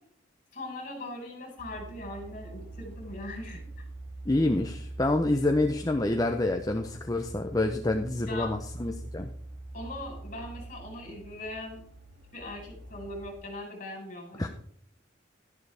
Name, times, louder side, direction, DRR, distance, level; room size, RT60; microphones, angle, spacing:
voice 1, 0.5-3.7 8.2-8.5 9.7-11.8 12.3-14.5, left 2 dB, 40° left, 1 dB, 4.7 m, -40 dB
sound 1, 1.6-13.4, right 2 dB, 75° right, 2.4 m, -44 dB
voice 2, 4.3-9.3 14.4-14.5, left 2 dB, 20° left, 5 dB, 0.6 m, -27 dB
12.0 x 11.0 x 3.4 m, 0.62 s
head